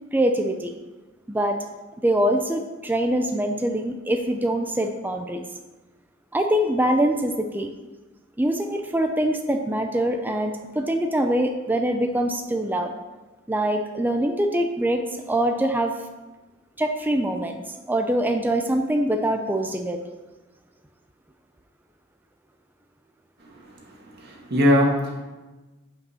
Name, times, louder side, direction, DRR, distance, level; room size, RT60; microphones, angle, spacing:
voice 1, 0.1-0.7 1.3-1.6 2.0-5.4 6.3-7.7 8.4-12.9 13.5-15.9 16.8-17.6 17.9-20.0, right 1 dB, 10° right, 4 dB, 0.4 m, -24 dB
voice 2, 24.2-25.2, left 1 dB, 50° right, -1 dB, 2.0 m, -20 dB
8.4 x 5.4 x 5.6 m, 1.2 s
head